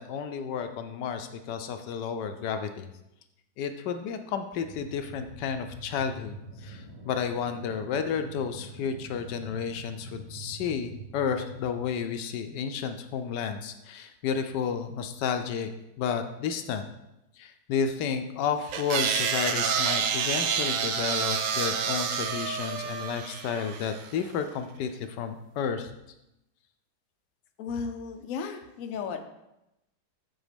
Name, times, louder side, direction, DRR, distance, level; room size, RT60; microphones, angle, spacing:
voice 1, 0.0-2.9 3.6-15.7 16.0-16.9 17.4-25.9, left 7 dB, 80° left, 8 dB, 1.2 m, -32 dB
sound 1, 4.6-11.9, right 2 dB, 40° right, 1.3 m, -45 dB
sound 2, 18.7-24.1, right 7 dB, 65° right, 0.8 m, -28 dB
voice 2, 27.6-29.2, left 5 dB, 60° left, 5 dB, 1.0 m, -34 dB
8.2 x 4.1 x 5.1 m, 0.90 s
omnidirectional pair, 1.9 m